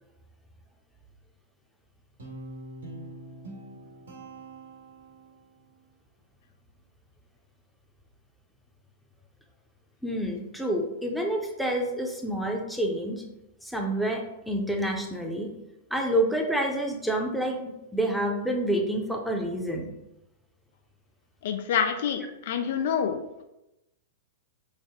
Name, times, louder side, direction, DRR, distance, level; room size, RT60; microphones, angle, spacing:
Guitar, 2.2-5.5, right 2 dB, 75° right, 1.1 m, -43 dB
voice 1, 10.0-13.2 13.6-15.5 15.9-19.9, right 1 dB, ahead, 1 dB, 0.7 m, -28 dB
voice 2, 21.4-23.2, left 7 dB, 60° left, 6 dB, 0.3 m, -27 dB
4.8 x 2.0 x 3.5 m, 0.91 s
figure-of-eight pair, 105°, 0 cm